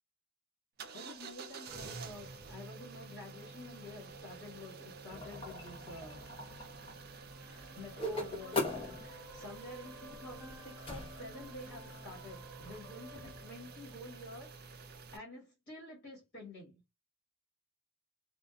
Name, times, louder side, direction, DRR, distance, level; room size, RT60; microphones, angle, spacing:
sound 1, 0.8-15.2, right 4 dB, 45° right, 0.4 m, -50 dB
voice 1, 0.9-6.3 7.1-8.6 8.9-16.8, left 2 dB, 45° left, 1.3 m, -50 dB
sound 2, 5.1-13.4, left 2 dB, 25° left, 0.7 m, -42 dB
sound 3, 7.2-14.2, right 1 dB, 15° right, 1.0 m, -55 dB
2.6 x 2.4 x 2.3 m
head